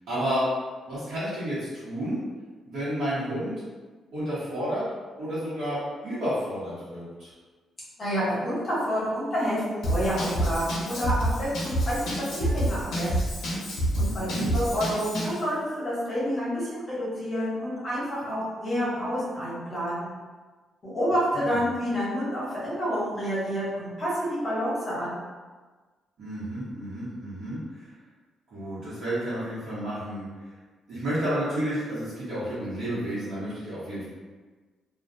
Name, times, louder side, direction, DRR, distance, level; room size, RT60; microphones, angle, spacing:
voice 1, 0.1-0.5 0.9-2.2 2.6-3.5 4.1-4.8 5.2-7.3 14.0-14.6 21.3-21.6 26.2-27.9 28.5-30.3 30.9-34.0, equal, 65° right, -13 dB, 1.1 m, -31 dB
voice 2, 8.0-13.1 13.5-13.6 13.9-20.1 20.8-25.2, equal, 25° left, -8 dB, 0.9 m, -29 dB
Drum kit / Drum, 9.8-15.4, right 1 dB, 60° left, 0.6 m, -28 dB
2.4 x 2.2 x 2.6 m, 1.3 s
cardioid pair, 175°, 0 cm